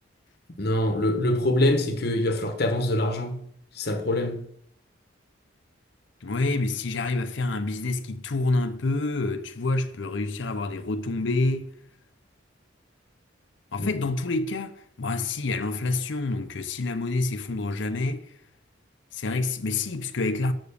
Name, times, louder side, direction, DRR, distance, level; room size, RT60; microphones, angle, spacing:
voice 1, 0.6-3.4 3.7-4.4 13.8-14.0, left 1 dB, 50° left, 1.1 m, -24 dB
voice 2, 6.2-11.7 13.7-18.3 19.1-20.5, left 2 dB, 70° left, 0.7 m, -27 dB
6.9 x 6.2 x 6.7 m
head